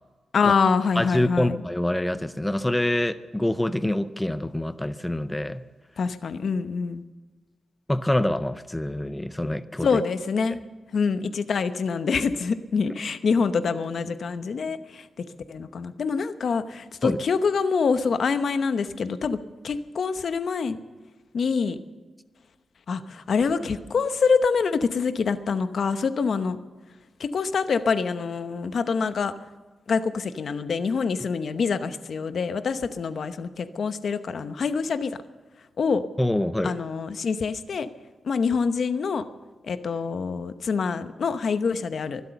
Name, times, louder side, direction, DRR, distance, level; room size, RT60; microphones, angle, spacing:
voice 1, 0.3-1.6 6.0-7.0 9.8-10.6 10.9-15.1 15.5-19.4 19.6-20.8 21.3-21.8 22.9-26.6 27.2-29.3 29.9-35.2 35.8-36.0 36.6-37.9 38.2-39.2 39.6-42.2, left 5 dB, 65° left, 11 dB, 0.9 m, -25 dB
voice 2, 1.0-5.6 7.9-10.0 17.0-17.2 36.2-36.8, left 1 dB, 10° left, 12 dB, 0.5 m, -26 dB
24.0 x 8.2 x 7.0 m, 1.3 s
wide cardioid pair, 110°, 0 cm